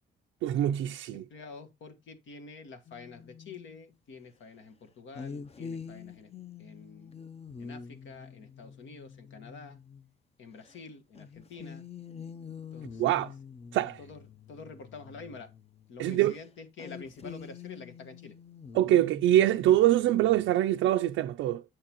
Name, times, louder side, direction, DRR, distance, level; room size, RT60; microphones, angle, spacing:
voice 1, 0.4-1.3 13.0-13.3 13.7-14.0 16.0-16.4 18.7-21.6, right 13 dB, 85° right, 0.4 m, -24 dB
voice 2, 1.1-6.3 6.6-7.1 7.6-9.8 10.4-11.8 12.7-13.2 14.0-14.2 14.5-15.5 15.9-18.3, left 4 dB, 70° left, 1.5 m, -47 dB
sound 1, 2.9-3.8 5.2-10.1 10.6-10.8 11.2-15.9 16.2-16.4 16.8-20.6, left 6 dB, 30° left, 0.6 m, -46 dB
7.6 x 6.5 x 3.0 m
cardioid pair, 90°, 20 cm